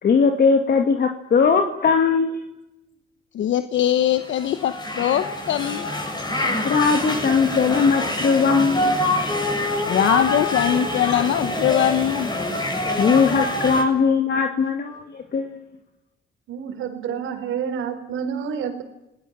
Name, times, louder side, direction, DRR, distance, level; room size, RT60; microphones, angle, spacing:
voice 1, 0.0-2.4 6.6-9.0 13.0-15.6, left 5 dB, 55° left, 5 dB, 2.3 m, -19 dB
voice 2, 3.3-5.9 9.9-12.3, left 11 dB, 70° left, 10 dB, 1.2 m, -21 dB
sound 1, 4.2-13.8, left 1 dB, 20° left, 7.9 m, -25 dB
voice 3, 16.5-18.8, right 7 dB, 85° right, 7 dB, 4.5 m, -28 dB
29.5 x 19.5 x 7.6 m, 0.92 s
cardioid pair, 90°, 20 cm